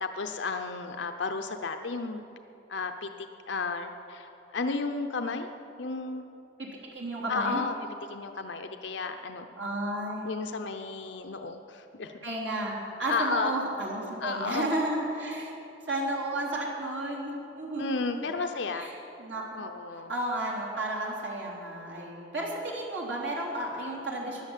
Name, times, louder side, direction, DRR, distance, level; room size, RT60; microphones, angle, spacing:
voice 1, 0.0-2.2 2.7-3.1 3.5-5.5 5.8-6.3 7.3-7.7 8.1-9.5 10.2-12.1 13.1-13.5 14.2-14.7 17.8-18.9 19.5-20.1, left 4 dB, 75° left, 6 dB, 0.7 m, -33 dB
voice 2, 6.6-7.6 9.6-10.3 12.2-15.5 15.9-18.3 18.7-18.9 19.2-24.4, right 1 dB, 80° right, -3 dB, 3.7 m, -33 dB
16.5 x 11.0 x 7.4 m, 2.9 s
head